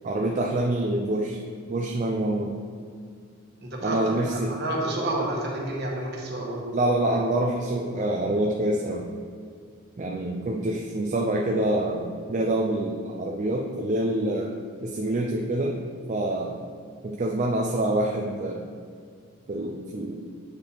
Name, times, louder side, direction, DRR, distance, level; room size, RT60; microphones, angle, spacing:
voice 1, 0.0-1.4 1.7-2.5 3.8-4.5 6.7-9.1 10.0-14.5 14.8-15.7 16.1-16.6 17.0-18.6 19.5-20.3, right 1 dB, 35° right, 0 dB, 0.4 m, -26 dB
voice 2, 3.6-6.7, right 1 dB, 55° right, -2 dB, 1.2 m, -30 dB
7.9 x 4.7 x 3.4 m, 2.1 s
head